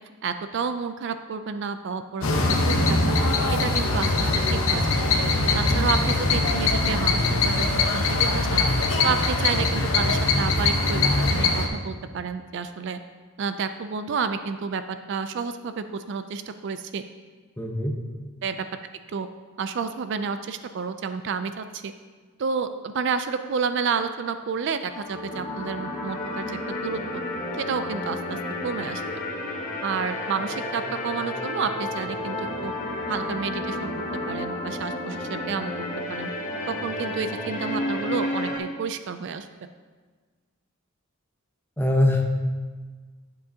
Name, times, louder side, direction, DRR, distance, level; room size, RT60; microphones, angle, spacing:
voice 1, 0.2-3.2 3.6-4.1 4.5-4.8 5.5-8.6 9.0-13.0 13.4-17.0 18.4-18.6 19.1-19.3 19.6-21.9 22.4-27.2 27.5-28.4 28.6-29.0 29.8-32.7 33.1-33.9 34.3-35.7 36.1-36.3 36.7-39.5, right 5 dB, 55° right, 10 dB, 0.3 m, -30 dB
sound 1, 2.2-11.7, left 2 dB, 70° left, 0.9 m, -22 dB
voice 2, 17.6-18.0 41.8-42.3, left 1 dB, 10° left, 0 dB, 0.8 m, -22 dB
sound 2, 24.9-38.6, left 1 dB, 35° left, 1.0 m, -31 dB
11.0 x 7.6 x 2.8 m, 1.5 s
head